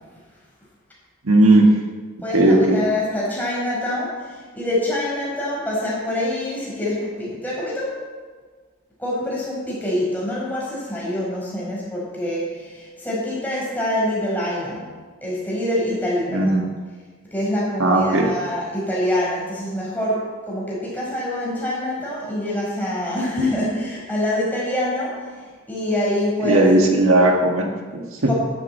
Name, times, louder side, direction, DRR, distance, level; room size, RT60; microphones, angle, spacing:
voice 1, 1.2-1.7 2.3-2.8 16.3-16.6 17.8-18.3 26.4-28.3, right 1 dB, 80° right, 2 dB, 1.7 m, -16 dB
voice 2, 2.2-8.0 9.0-14.9 15.2-16.5 17.3-26.7 28.3-28.4, left 1 dB, 10° left, -5 dB, 5.0 m, -25 dB
11.0 x 8.8 x 8.5 m, 1.4 s
head